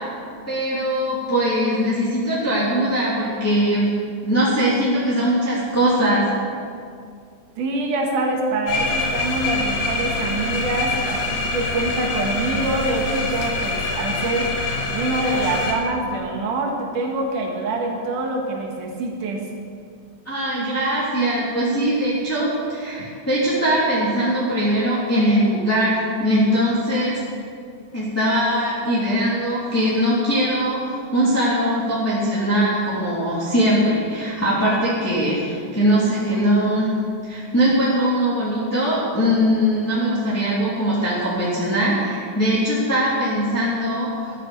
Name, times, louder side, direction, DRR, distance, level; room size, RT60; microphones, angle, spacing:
voice 1, 0.5-6.2 20.2-27.2 27.9-36.9 37.2-44.3, equal, 5° left, -9 dB, 2.6 m, -21 dB
voice 2, 7.6-14.5 14.9-19.4, right 2 dB, 85° right, 1 dB, 3.3 m, -25 dB
sound 1, 8.7-15.7, left 3 dB, 85° left, 3.2 m, -25 dB
12.5 x 9.9 x 7.0 m, 2.3 s
omnidirectional pair, 3.5 m